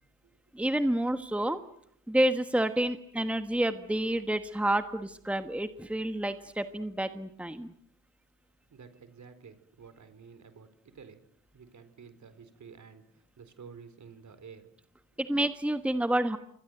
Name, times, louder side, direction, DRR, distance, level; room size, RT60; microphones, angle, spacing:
voice 1, 0.5-1.6 2.1-7.7 15.2-16.4, right 1 dB, 5° right, 10 dB, 1.4 m, -29 dB
voice 2, 8.7-11.2 11.5-14.7, right 6 dB, 60° right, 11 dB, 4.1 m, -51 dB
27.0 x 23.5 x 7.9 m, 0.73 s
cardioid pair, 95°, 33 cm